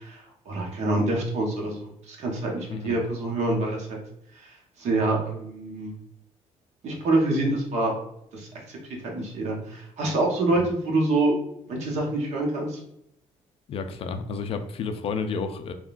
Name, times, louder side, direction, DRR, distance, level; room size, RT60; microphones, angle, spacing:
voice 1, 0.0-4.0 4.4-4.5 4.8-5.9 6.8-7.9 8.3-8.8 9.0-11.3 11.7-12.8, right 2 dB, 65° right, -1 dB, 1.0 m, -26 dB
voice 2, 13.7-15.7, left 5 dB, 50° left, 8 dB, 0.4 m, -31 dB
3.6 x 2.3 x 2.4 m, 0.78 s
cardioid pair, 120°, 12 cm